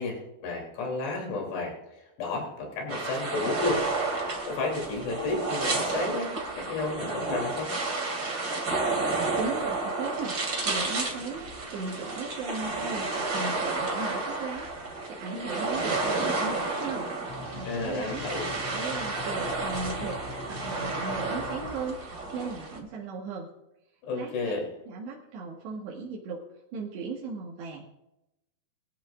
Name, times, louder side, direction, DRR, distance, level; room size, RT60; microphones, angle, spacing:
voice 1, 0.0-3.8 4.1-7.7 17.7-18.6 24.0-24.7, left 3 dB, 80° left, -1 dB, 5.4 m, -32 dB
sound 1, 2.9-22.8, right 3 dB, 30° right, 2.2 m, -31 dB
voice 2, 9.4-17.1 17.5-18.2 18.5-20.2 20.5-23.5 24.1-24.6 24.9-26.4 26.7-27.8, right 4 dB, 85° right, -4 dB, 4.0 m, -37 dB
sound 2, 17.3-21.7, left 3 dB, 40° left, 3.3 m, -43 dB
23.0 x 13.0 x 2.5 m, 0.90 s
omnidirectional pair, 4.8 m